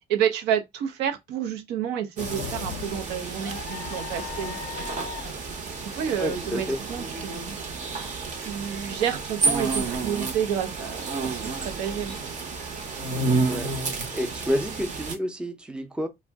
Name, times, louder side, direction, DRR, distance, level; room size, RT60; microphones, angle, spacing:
voice 1, 0.1-4.6 5.8-7.6 8.4-12.2 12.9-13.0, right 9 dB, 85° right, 0.6 m, -29 dB
sound 1, 2.2-8.3 8.8-8.9 10.0-10.3, left 10 dB, 65° left, 0.4 m, -40 dB
sound 2, 2.2-15.2, right 3 dB, 45° right, 0.8 m, -31 dB
voice 2, 6.2-6.8 13.5-13.7 14.1-16.1, equal, 5° right, 0.5 m, -29 dB
2.5 x 2.1 x 3.4 m
cardioid pair, 110°, 17 cm